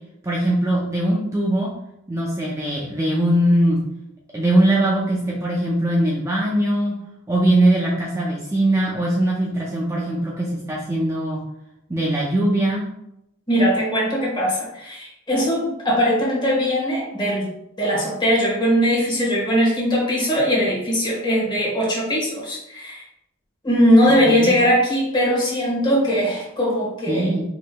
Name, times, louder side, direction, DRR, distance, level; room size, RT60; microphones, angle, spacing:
voice 1, 0.2-1.7 2.1-3.8 4.3-7.0 7.3-11.4 11.9-12.9 24.3-24.6 27.1-27.4, right 1 dB, 15° right, -4 dB, 0.5 m, -21 dB
voice 2, 13.5-17.5 17.8-23.0 23.6-27.3, equal, 25° left, -5 dB, 1.3 m, -20 dB
4.7 x 3.0 x 2.2 m, 0.82 s
head